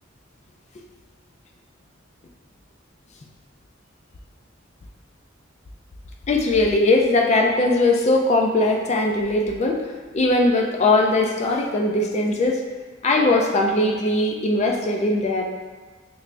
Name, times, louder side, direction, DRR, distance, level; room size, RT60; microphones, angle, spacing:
voice 1, 6.3-12.6 13.0-15.4, left 2 dB, 35° left, 2 dB, 0.3 m, -20 dB
3.2 x 3.2 x 2.5 m, 1.4 s
head